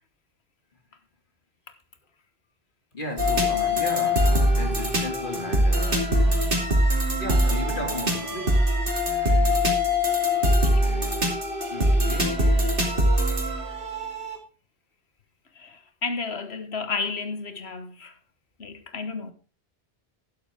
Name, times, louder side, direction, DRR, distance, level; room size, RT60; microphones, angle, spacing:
voice 1, 2.9-6.2 7.2-8.7 11.7-12.6, left 2 dB, 50° left, 2.5 m, -35 dB
sound 1, 3.2-14.4, equal, 60° right, 2.9 m, -22 dB
voice 2, 10.6-11.0 15.6-18.1 18.6-19.3, left 4 dB, 85° left, 1.6 m, -32 dB
12.0 x 11.0 x 3.5 m
omnidirectional pair, 1.1 m